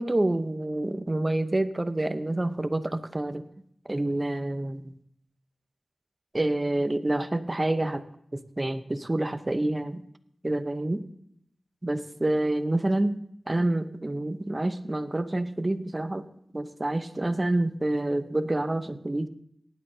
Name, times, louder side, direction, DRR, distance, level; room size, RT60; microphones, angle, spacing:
voice 1, 0.0-3.4 3.9-4.9 6.3-8.0 8.3-10.0 10.4-11.0 11.8-13.2 13.5-16.3 16.5-19.3, right 1 dB, 30° right, 11 dB, 0.8 m, -27 dB
18.5 x 11.0 x 2.8 m, 0.71 s
cardioid pair, 40°, 0 cm